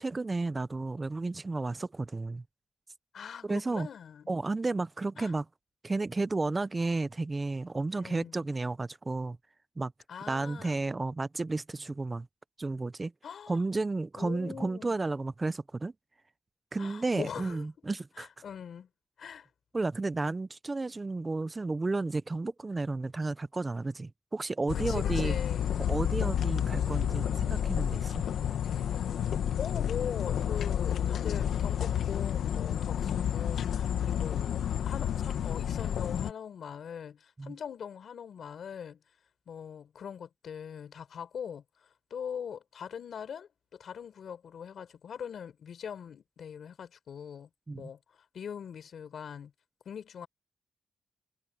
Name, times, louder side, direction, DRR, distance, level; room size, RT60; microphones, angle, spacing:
voice 1, 0.0-2.4 3.4-3.9 4.3-5.5 5.8-9.4 9.8-9.9 10.3-12.3 12.6-13.1 13.5-15.9 16.7-18.3 19.7-25.4 25.9-28.2 37.4-37.5 47.7-47.9, right 3 dB, 20° right, 0.4 m, -32 dB
voice 2, 3.1-4.3 5.2-5.3 8.0-8.5 10.1-10.8 13.2-13.6 14.2-15.1 16.8-17.6 18.2-18.9 19.2-19.5 24.7-25.8 29.2-29.3 29.6-39.0 39.5-47.5 47.7-48.0 48.3-49.5 49.8-50.3, left 7 dB, 60° left, 4.2 m, -42 dB
sound 1, 24.7-36.3, left 9 dB, 85° left, 1.4 m, -30 dB
wide cardioid pair, 160°, 0 cm